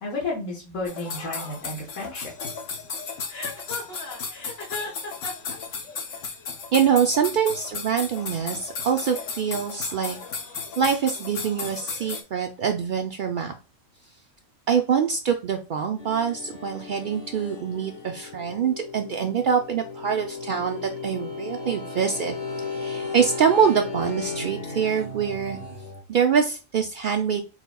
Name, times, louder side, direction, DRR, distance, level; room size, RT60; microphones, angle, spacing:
voice 1, 0.0-2.3, left 2 dB, 85° left, -1 dB, 1.7 m, -32 dB
sound 1, 0.9-12.2, left 5 dB, 65° left, 1.1 m, -35 dB
Chuckle chortle, 3.3-5.6, left 3 dB, 50° left, 1.4 m, -35 dB
voice 2, 6.7-10.2 10.8-13.5 14.7-22.3 22.8-25.6 26.1-27.4, right 7 dB, 75° right, 3 dB, 0.4 m, -24 dB
sound 2, 16.0-26.0, left 4 dB, 30° left, 1.2 m, -35 dB
4.2 x 4.0 x 2.2 m, 0.32 s
omnidirectional pair, 1.4 m